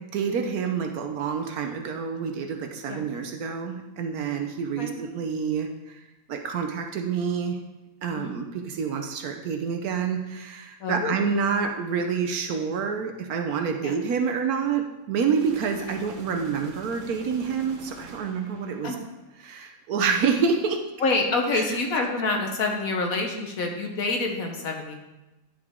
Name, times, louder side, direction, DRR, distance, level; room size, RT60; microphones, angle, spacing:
voice 1, 0.1-6.0 6.3-7.6 8.0-18.9 19.4-20.8 21.5-21.8, right 6 dB, 65° right, 4 dB, 1.1 m, -28 dB
voice 2, 8.1-8.4 10.8-11.2 13.8-13.9 18.8-19.0 21.0-25.0, left 3 dB, 60° left, 2 dB, 1.3 m, -27 dB
sound 1, 15.3-19.4, right 4 dB, 40° right, 0.7 m, -45 dB
10.5 x 5.0 x 3.6 m, 1.0 s
omnidirectional pair, 1.8 m